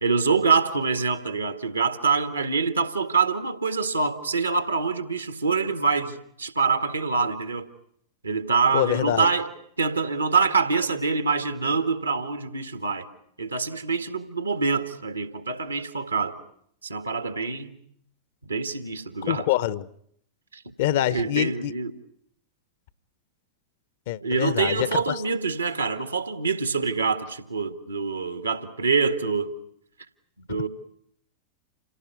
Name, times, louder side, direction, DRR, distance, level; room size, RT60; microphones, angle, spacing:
voice 1, 0.0-7.7 8.2-9.5 9.8-13.1 13.4-16.4 16.8-17.8 18.4-19.5 20.5-20.6 21.1-21.9 24.2-29.5 30.5-30.7, right 4 dB, 80° right, 1.9 m, -25 dB
voice 2, 8.7-9.3 19.2-19.9 20.8-21.7 24.1-25.2 30.5-30.7, left 13 dB, 55° left, 1.0 m, -25 dB
28.0 x 18.0 x 9.4 m
figure-of-eight pair, 90°, 0 cm